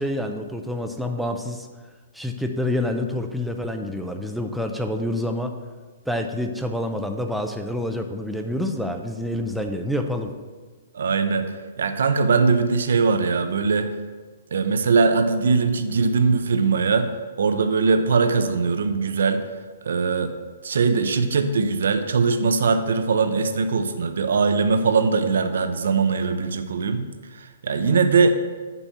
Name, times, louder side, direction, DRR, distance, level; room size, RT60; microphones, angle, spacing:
voice 1, 0.0-1.7 2.1-5.5 6.1-10.3, left 1 dB, ahead, 4 dB, 0.3 m, -27 dB
voice 2, 10.9-11.5 11.8-13.9 14.5-17.1 17.4-19.4 19.8-20.3 20.6-27.0 27.4-28.3, right 4 dB, 70° right, 8 dB, 0.6 m, -21 dB
5.4 x 4.2 x 5.9 m, 1.4 s
hypercardioid pair, 175°, 0 cm